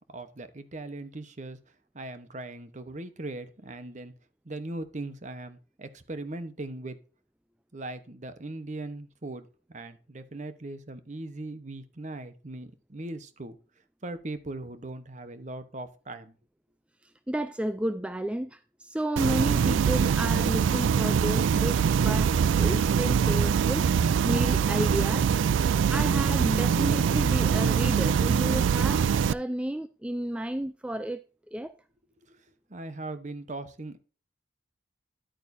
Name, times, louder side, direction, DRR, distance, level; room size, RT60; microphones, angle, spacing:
voice 1, 0.1-1.6 1.9-4.1 4.4-7.0 7.7-13.6 14.0-16.3 32.3-32.4 32.7-34.0, right 2 dB, 40° right, 1.0 m, -39 dB
voice 2, 17.0-22.3 22.6-25.3 25.9-31.2 31.5-31.7, right 1 dB, 5° right, 0.3 m, -32 dB
sound 1, 19.2-29.3, right 7 dB, 80° right, 0.3 m, -23 dB
10.5 x 8.9 x 2.7 m
head